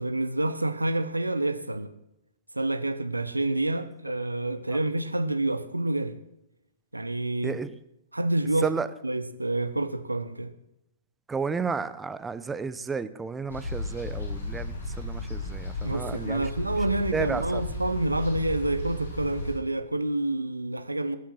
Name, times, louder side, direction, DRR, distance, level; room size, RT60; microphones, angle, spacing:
voice 1, 0.0-1.9 2.5-6.2 6.9-7.6 8.1-8.7 9.0-10.5 15.8-21.2, right 2 dB, 90° right, 1.0 m, -28 dB
voice 2, 7.4-7.7 8.6-8.9 11.3-16.5 17.1-17.6, right 5 dB, 10° right, 0.8 m, -32 dB
sound 1, 13.5-19.5, left 2 dB, 65° left, 7.0 m, -34 dB
19.5 x 8.4 x 6.1 m
figure-of-eight pair, 110°, 0 cm